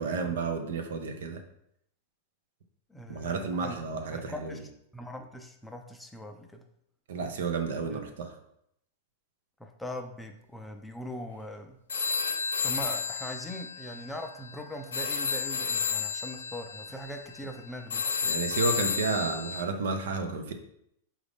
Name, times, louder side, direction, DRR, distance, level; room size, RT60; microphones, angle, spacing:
voice 1, 0.0-1.4 3.1-4.6 7.1-8.4 18.2-20.5, right 4 dB, 75° right, 6 dB, 0.5 m, -31 dB
voice 2, 2.9-3.8 4.1-4.6 4.9-6.6 7.9-8.0 9.6-11.8 12.6-18.1, left 1 dB, 5° left, 4 dB, 0.4 m, -41 dB
sound 1, 11.9-19.6, left 5 dB, 85° left, 0.3 m, -32 dB
4.0 x 2.4 x 3.4 m, 0.75 s
hypercardioid pair, 110°, 0 cm